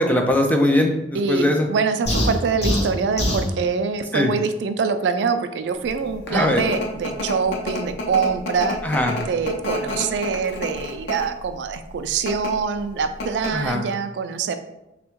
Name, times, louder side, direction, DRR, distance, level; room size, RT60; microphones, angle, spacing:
voice 1, 0.0-1.7 4.1-4.3 6.3-6.7 8.8-9.1 13.5-13.8, left 1 dB, 10° left, 2 dB, 0.4 m, -20 dB
voice 2, 1.1-8.8 9.3-14.6, right 5 dB, 80° right, 9 dB, 0.3 m, -24 dB
sound 1, 2.1-3.5, equal, 40° left, 0.9 m, -22 dB
sound 2, 6.0-11.4 12.1-12.5 12.9-13.0 13.2-13.7, left 2 dB, 75° left, 0.7 m, -29 dB
3.4 x 2.3 x 4.4 m, 0.93 s
head